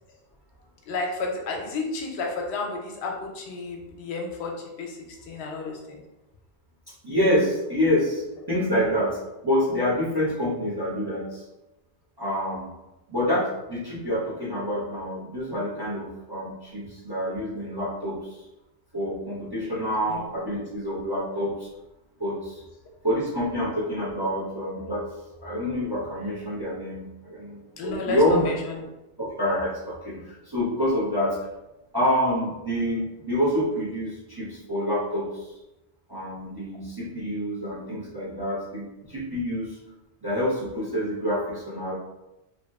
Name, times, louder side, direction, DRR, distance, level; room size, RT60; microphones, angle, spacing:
voice 1, 0.9-6.0 8.4-8.5 8.8-8.9 20.0-20.2 27.8-28.8, left 3 dB, 90° left, 1 dB, 0.9 m, -32 dB
voice 2, 7.0-9.2 9.4-11.4 12.2-12.7 13.1-18.4 18.9-21.7 22.2-22.6 23.0-25.0 25.4-28.5 29.2-31.4 31.9-35.5 36.1-39.8 40.2-41.9, equal, 35° right, -7 dB, 0.4 m, -27 dB
2.9 x 2.5 x 2.2 m, 0.97 s
omnidirectional pair, 1.1 m